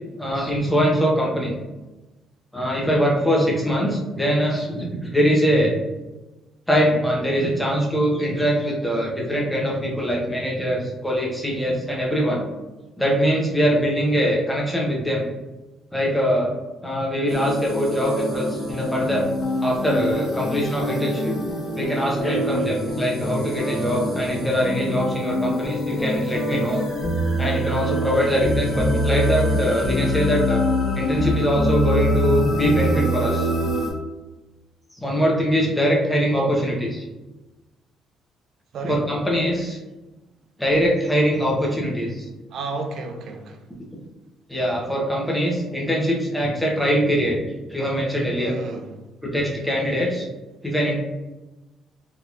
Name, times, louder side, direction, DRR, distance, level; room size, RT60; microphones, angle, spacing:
voice 1, 0.2-1.5 2.5-5.7 6.7-12.4 13.0-15.2 15.9-16.5 16.8-19.3 19.6-21.4 21.8-26.8 27.4-30.6 31.0-33.5 35.0-37.0 38.8-39.8 40.6-42.3 44.5-47.4 47.7-48.6 49.2-50.3 50.6-50.9, equal, 5° left, -3 dB, 0.7 m, -22 dB
sound 1, 17.3-33.9, equal, 40° left, 1.0 m, -25 dB
voice 2, 38.7-39.1 42.5-43.6 48.4-49.0, right 3 dB, 55° right, 4 dB, 0.4 m, -32 dB
3.3 x 2.8 x 2.4 m, 1.1 s
cardioid pair, 140°, 0 cm